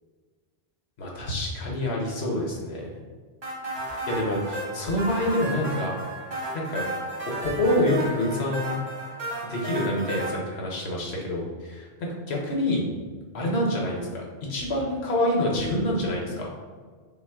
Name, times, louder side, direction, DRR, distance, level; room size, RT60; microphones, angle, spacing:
voice 1, 1.0-2.9 4.1-5.9 6.5-6.9 7.2-8.8 9.5-12.9 13.3-16.5, left 1 dB, 80° left, -2 dB, 1.2 m, -27 dB
sound 1, 3.4-10.3, right 1 dB, 85° right, 1.5 m, -33 dB
5.7 x 2.1 x 3.5 m, 1.5 s
omnidirectional pair, 1.1 m